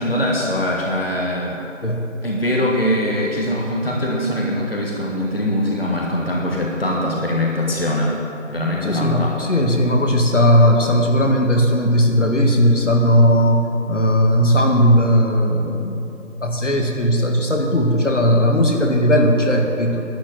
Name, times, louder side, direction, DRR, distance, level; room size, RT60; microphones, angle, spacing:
voice 1, 0.0-1.6 2.2-8.2 8.5-9.4, left 1 dB, 50° left, -2 dB, 1.6 m, -22 dB
voice 2, 8.8-16.0 16.4-20.0, equal, 65° left, 2 dB, 1.8 m, -17 dB
11.5 x 9.9 x 7.6 m, 2.9 s
figure-of-eight pair, 175°, 39 cm